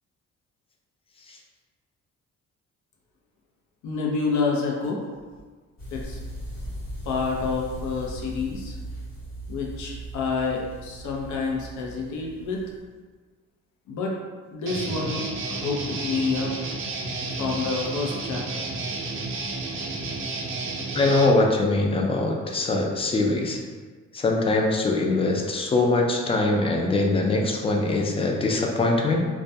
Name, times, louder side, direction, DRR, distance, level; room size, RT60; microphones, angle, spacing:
voice 1, 3.8-5.1 5.9-6.2 7.0-8.7 9.5-12.6 13.9-14.1 14.5-16.5 17.3-18.7, left 4 dB, 75° left, -1 dB, 0.6 m, -28 dB
sound 1, 5.8-12.8, right 1 dB, 45° left, 1.1 m, -38 dB
Guitar, 14.6-21.3, right 3 dB, 45° right, 0.5 m, -31 dB
voice 2, 20.9-23.6 24.1-29.2, left 2 dB, 20° left, 1 dB, 0.3 m, -22 dB
2.3 x 2.1 x 2.6 m, 1.4 s
cardioid pair, 90°, 30 cm